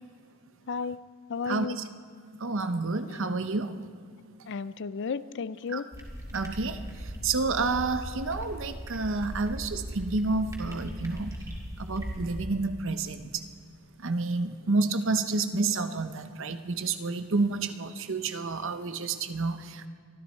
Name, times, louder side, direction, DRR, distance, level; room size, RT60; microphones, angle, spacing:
voice 1, 1.3-1.8 3.1-3.3 4.5-5.9, left 5 dB, 55° left, 16 dB, 0.4 m, -33 dB
voice 2, 2.4-3.7 5.7-5.8 6.3-6.8 7.2-11.3 11.8-13.3 14.0-19.9, right 3 dB, 60° right, 10 dB, 0.9 m, -29 dB
sound 1, 5.9-12.4, equal, 15° right, 2.4 m, -39 dB
23.5 x 13.5 x 4.5 m, 2.2 s
head